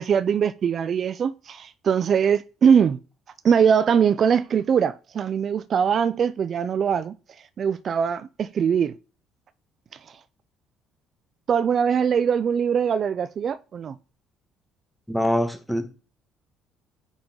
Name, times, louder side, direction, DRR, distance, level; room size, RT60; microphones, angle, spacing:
voice 1, 0.0-3.0 3.4-7.1 7.6-8.9 11.5-13.9, right 7 dB, 50° right, 0.3 m, -22 dB
voice 2, 15.1-15.9, equal, 5° left, 1.3 m, -24 dB
8.8 x 3.9 x 3.7 m
supercardioid pair, 80°, 0 cm